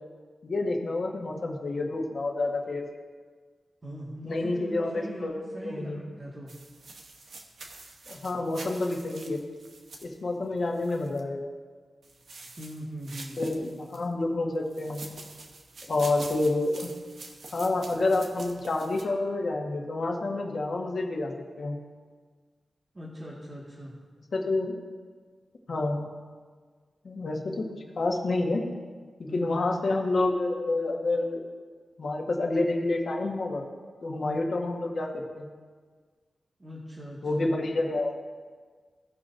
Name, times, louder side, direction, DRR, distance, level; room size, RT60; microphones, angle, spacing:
voice 1, 0.4-2.9 4.2-5.3 5.6-6.0 8.1-9.4 10.0-11.5 13.4-15.0 15.9-16.9 17.5-21.3 21.6-21.8 24.3-24.7 25.7-26.0 27.0-28.6 29.2-31.4 32.0-33.6 34.0-35.5 37.2-38.2, left 2 dB, 55° left, 1 dB, 1.3 m, -28 dB
voice 2, 3.8-6.5 12.6-13.4 22.9-23.9 29.3-29.6 34.2-34.4 36.6-37.5, equal, 25° right, -7 dB, 1.8 m, -40 dB
sound 1, 6.5-11.2 12.0-14.1 14.7-19.0, right 3 dB, 75° right, 1.0 m, -46 dB
17.0 x 5.8 x 2.6 m, 1.6 s
wide cardioid pair, 120°, 0 cm